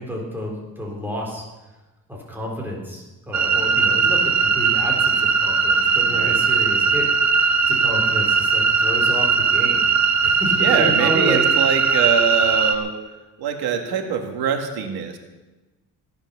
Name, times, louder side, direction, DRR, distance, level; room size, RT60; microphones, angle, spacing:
voice 1, 0.0-1.4 2.1-9.8 10.2-11.4, equal, 5° right, -2 dB, 4.0 m, -30 dB
sound 1, 3.3-12.7, right 5 dB, 45° right, 1.3 m, -19 dB
voice 2, 6.1-6.4 10.6-12.9 13.4-15.2, right 7 dB, 85° right, 4 dB, 2.2 m, -23 dB
16.0 x 10.5 x 6.9 m, 1.1 s
cardioid pair, 170°, 37 cm